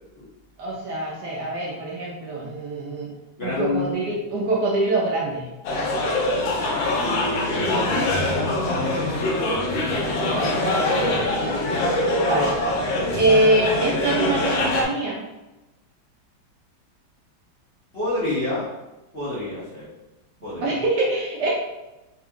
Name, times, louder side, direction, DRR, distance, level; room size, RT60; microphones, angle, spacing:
voice 1, 0.6-3.1 3.4-5.5 12.2-12.5 13.2-15.2 20.6-21.5, right 2 dB, 65° right, -3 dB, 1.1 m, -23 dB
voice 2, 3.4-3.9 6.6-11.4 17.9-18.7 19.1-19.9 20.4-20.7, left 1 dB, 40° left, -9 dB, 1.1 m, -30 dB
sound 1, 5.6-14.8, left 1 dB, 85° left, 1.6 m, -23 dB
4.4 x 2.3 x 3.6 m, 1.0 s
omnidirectional pair, 2.2 m